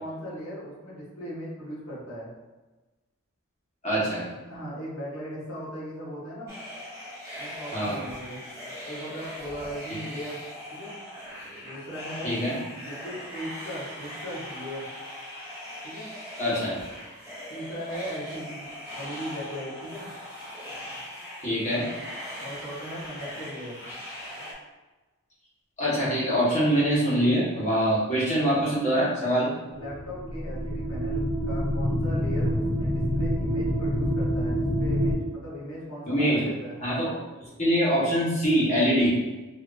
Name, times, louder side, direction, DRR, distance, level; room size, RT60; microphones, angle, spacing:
voice 1, 0.0-2.3 4.5-6.5 7.4-8.4 8.8-10.4 10.7-10.9 11.6-12.3 12.7-14.9 15.8-16.1 17.5-20.1 22.4-23.8 29.7-37.2, equal, 80° left, -7 dB, 1.3 m, -38 dB
voice 2, 3.8-4.3 7.7-8.0 12.2-12.6 16.4-16.8 21.4-21.9 25.8-29.5 36.1-36.4 36.8-37.1 37.6-39.2, equal, 35° left, -8 dB, 1.2 m, -24 dB
sound 1, 6.5-24.5, equal, 15° right, 1.1 m, -40 dB
sound 2, 29.8-35.1, equal, 50° left, 1.5 m, -27 dB
3.3 x 2.8 x 2.5 m, 1.2 s
head